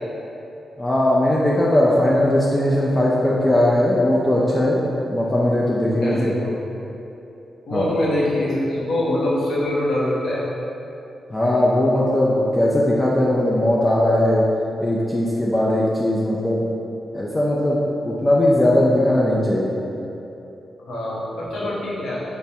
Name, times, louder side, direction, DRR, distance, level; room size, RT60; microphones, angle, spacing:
voice 1, 0.8-6.4 7.7-7.9 11.3-14.5 14.8-16.7 17.1-19.7 21.6-21.7, left 1 dB, 20° left, -5 dB, 0.4 m, -19 dB
voice 2, 6.0-6.5 7.7-10.4 20.9-22.2, left 1 dB, 90° left, -7 dB, 0.8 m, -24 dB
3.4 x 2.1 x 4.1 m, 2.9 s
cardioid pair, 65°, 0 cm